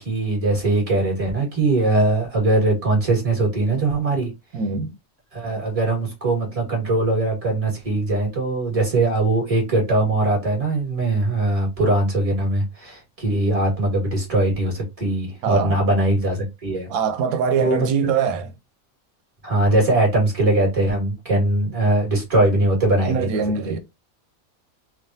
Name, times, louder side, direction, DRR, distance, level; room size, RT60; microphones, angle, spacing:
voice 1, 0.0-4.3 5.3-16.9 17.6-17.9 19.4-23.4, right 2 dB, 25° right, 1.5 m, -21 dB
voice 2, 4.5-4.9 15.4-15.8 16.9-18.5 23.0-23.8, right 6 dB, 90° right, 1.1 m, -23 dB
3.4 x 2.3 x 2.6 m
omnidirectional pair, 1.5 m